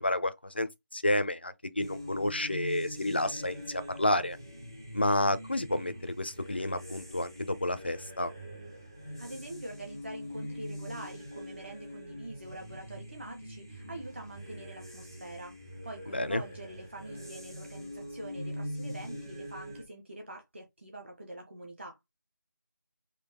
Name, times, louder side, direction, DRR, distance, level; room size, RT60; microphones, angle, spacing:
voice 1, 0.0-4.4 4.9-8.3 16.1-16.4, left 1 dB, 30° left, 0.5 m, -30 dB
sound 1, 1.8-19.8, equal, 15° right, 0.6 m, -43 dB
voice 2, 9.2-15.6 15.8-22.0, right 1 dB, 35° right, 1.2 m, -45 dB
5.2 x 2.7 x 3.7 m
figure-of-eight pair, 180°, 10 cm